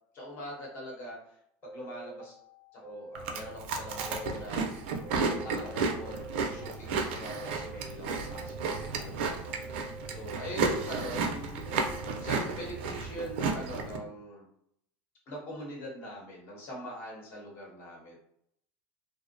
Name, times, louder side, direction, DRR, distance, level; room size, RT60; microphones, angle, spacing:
voice 1, 0.1-1.4 1.6-2.4 2.7-4.7 5.1-9.4 10.1-11.6 12.2-14.5 15.3-18.2, left 1 dB, 40° left, -2 dB, 0.9 m, -42 dB
sound 1, 1.6-3.5 3.8-5.7 6.0-7.9 8.2-10.1 10.5-12.3, right 1 dB, 10° left, 0.8 m, -47 dB
Chewing mastication, 3.1-14.0, right 4 dB, 75° right, 0.4 m, -33 dB
2.5 x 2.0 x 2.6 m, 0.71 s
supercardioid pair, 165°, 6 cm